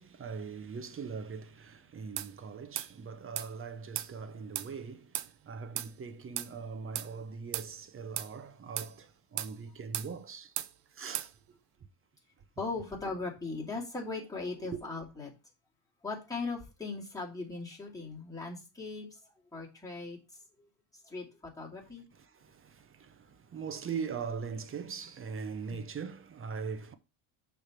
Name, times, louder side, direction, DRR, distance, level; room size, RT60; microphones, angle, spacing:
voice 1, 0.0-10.6 10.9-11.6 14.6-14.8 21.8-26.9, right 5 dB, 25° right, 0.8 m, -41 dB
sound 1, 2.2-2.3 2.8-2.9 3.4-3.5 3.9-4.1 4.5-4.7 5.1-5.3 5.8-5.9 6.4-6.5 6.9-7.1 7.5-7.7 8.2-8.3 8.8-8.9 9.4-9.5 9.9-10.1 10.6-10.7 11.1-11.3, right 14 dB, 55° right, 0.7 m, -36 dB
voice 2, 12.6-15.3 16.0-19.2 19.5-20.2 20.6-20.7 21.0-22.1 25.7-25.8, left 3 dB, 5° left, 2.7 m, -39 dB
6.3 x 3.5 x 6.0 m
supercardioid pair, 100°, 48 cm